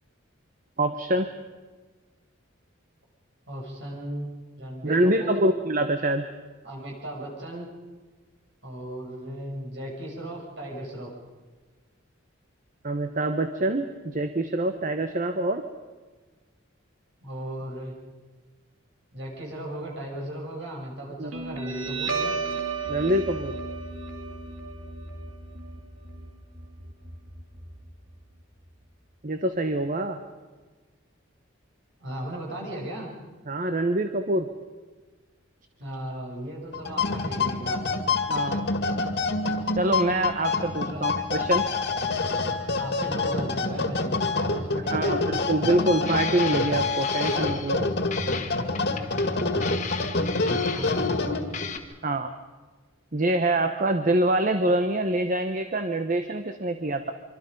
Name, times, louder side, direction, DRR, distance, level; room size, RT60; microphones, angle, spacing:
voice 1, 0.8-1.3 4.8-6.3 12.8-15.6 21.2-21.3 22.9-23.6 29.2-30.2 33.5-34.5 38.3-38.7 39.8-41.7 44.9-47.9 52.0-52.3 53.1-57.1, right 1 dB, 40° right, 8 dB, 1.0 m, -25 dB
voice 2, 3.5-5.4 6.6-7.7 8.6-11.2 17.2-17.9 19.1-22.4 32.0-33.1 35.8-37.8 40.8-41.0 42.7-45.2 50.7-51.5, right 1 dB, 60° right, -1 dB, 6.6 m, -36 dB
Guitar, 21.3-28.3, right 4 dB, 90° right, 2.9 m, -34 dB
sound 1, 36.7-51.7, left 3 dB, 55° left, 2.1 m, -27 dB
sound 2, 46.0-47.8 48.1-51.3 51.5-51.8, left 6 dB, 35° left, 1.5 m, -36 dB
25.5 x 24.5 x 5.3 m, 1.3 s
head